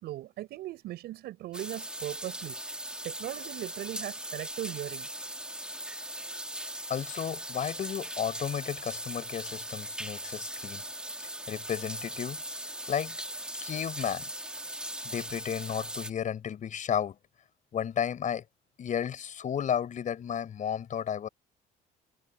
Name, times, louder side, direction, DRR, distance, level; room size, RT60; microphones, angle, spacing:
voice 1, 0.0-2.6 3.0-5.1, right 15 dB, 75° right, 6.3 m, -38 dB
sound 1, 1.5-16.1, right 1 dB, 5° right, 2.1 m, -39 dB
voice 2, 6.9-10.8 11.2-12.4 12.9-13.1 13.6-14.3 15.0-17.2 17.7-18.4 18.8-21.3, left 8 dB, 50° left, 5.1 m, -33 dB
cardioid pair, 110°, 17 cm